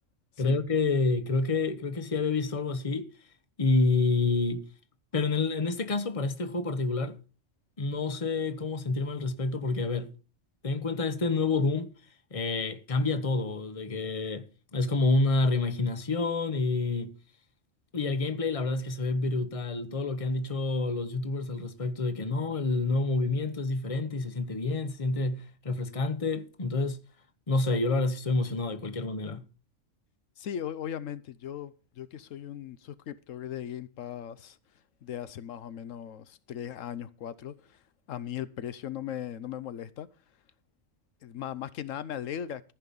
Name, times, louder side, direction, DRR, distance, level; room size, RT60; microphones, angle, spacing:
voice 1, 0.4-3.1 3.6-4.7 5.1-7.2 7.8-10.1 10.6-11.9 12.3-17.1 17.9-27.0 27.5-29.4, left 3 dB, 30° left, 1.1 m, -28 dB
voice 2, 30.4-34.6 35.0-37.8 38.1-40.1 41.2-42.7, left 10 dB, 85° left, 1.1 m, -38 dB
14.5 x 5.8 x 6.9 m
omnidirectional pair, 1.3 m